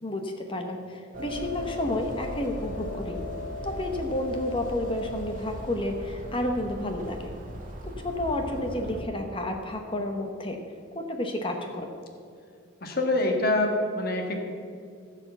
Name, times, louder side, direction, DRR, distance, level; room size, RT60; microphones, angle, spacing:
voice 1, 0.0-3.2 3.6-7.3 8.0-10.6 10.9-11.9, left 1 dB, 25° left, 4 dB, 0.9 m, -31 dB
sound 1, 1.1-9.0, left 1 dB, 40° right, 1.6 m, -37 dB
voice 2, 12.8-14.4, left 2 dB, 50° left, 2 dB, 1.5 m, -25 dB
14.5 x 5.0 x 7.9 m, 2.3 s
head